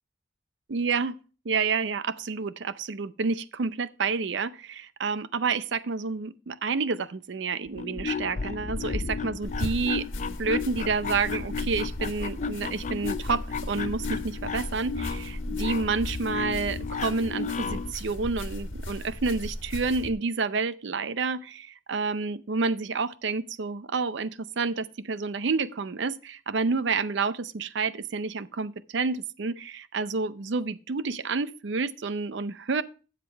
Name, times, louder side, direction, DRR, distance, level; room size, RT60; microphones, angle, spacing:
voice 1, 0.7-1.2 1.4-10.1 10.4-32.8, right 4 dB, 65° right, 0.5 m, -29 dB
sound 1, 7.7-17.9, left 5 dB, 40° left, 0.5 m, -34 dB
sound 2, 9.4-20.1, left 1 dB, 85° left, 1.4 m, -37 dB
12.5 x 7.4 x 3.3 m
head